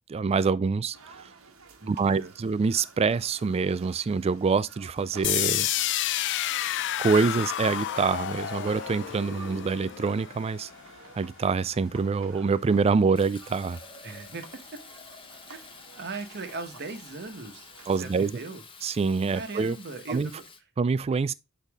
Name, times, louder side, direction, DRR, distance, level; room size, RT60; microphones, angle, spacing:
voice 1, 0.1-1.3 1.9-5.7 7.0-10.7 11.1-13.8 17.9-18.3 18.8-19.8 20.1-20.3 20.8-21.3, right 4 dB, 30° right, 0.3 m, -25 dB
sound 1, 0.9-18.3, right 4 dB, 75° right, 1.2 m, -52 dB
voice 2, 1.8-2.3 14.0-14.4 15.5-15.6 16.0-17.7 18.0-18.6 19.3-20.4, right 3 dB, 50° right, 1.1 m, -38 dB
sound 2, 5.2-11.2, left 12 dB, 60° left, 0.4 m, -30 dB
Fill (with liquid), 13.1-20.6, left 4 dB, 25° left, 0.8 m, -49 dB
8.1 x 4.1 x 3.5 m
head